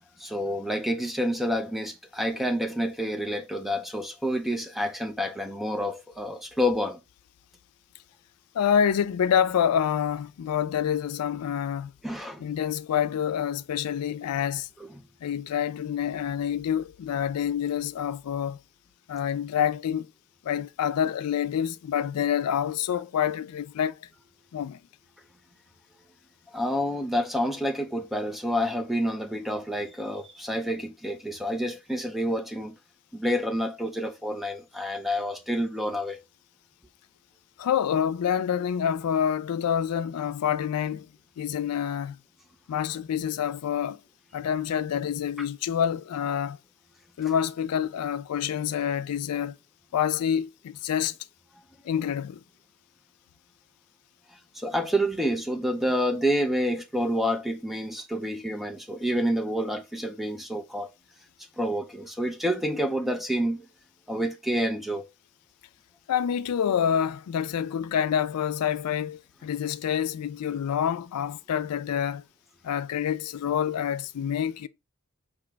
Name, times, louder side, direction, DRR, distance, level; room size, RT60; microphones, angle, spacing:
voice 1, 0.2-7.0 12.0-12.5 14.9-15.0 26.5-32.8 33.1-36.2 54.5-60.9 61.6-63.7 64.1-65.1, equal, ahead, 0.4 m, -28 dB
voice 2, 8.5-11.9 12.4-14.7 15.2-18.6 19.1-20.1 20.4-24.1 24.5-24.8 37.6-41.1 41.4-42.2 42.7-44.0 44.3-46.6 47.2-49.5 49.9-51.2 51.8-52.4 66.1-72.2 72.6-74.7, left 8 dB, 85° left, 0.3 m, -27 dB
4.9 x 2.9 x 3.3 m
head